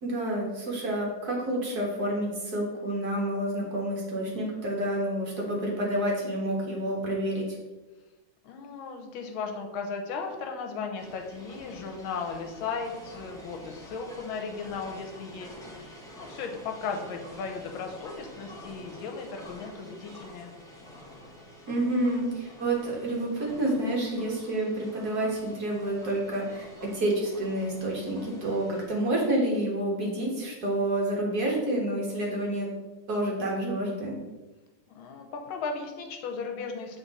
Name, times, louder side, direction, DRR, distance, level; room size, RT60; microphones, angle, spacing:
voice 1, 0.0-7.6 21.7-32.7 33.1-34.2, right 1 dB, 50° right, -2 dB, 1.7 m, -29 dB
voice 2, 8.4-20.5 34.9-37.0, left 5 dB, 80° left, 3 dB, 1.6 m, -36 dB
sound 1, 11.0-28.8, equal, 5° left, 0.4 m, -48 dB
7.8 x 3.8 x 4.0 m, 1.1 s
omnidirectional pair, 2.3 m